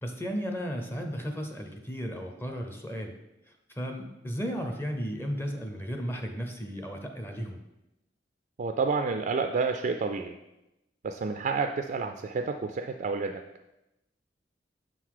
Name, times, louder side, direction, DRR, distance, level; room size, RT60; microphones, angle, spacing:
voice 1, 0.0-3.1 3.7-7.6, equal, 15° left, 4 dB, 0.6 m, -34 dB
voice 2, 8.6-10.3 11.0-13.4, right 4 dB, 45° right, 5 dB, 0.3 m, -29 dB
6.4 x 3.9 x 4.6 m, 0.93 s
head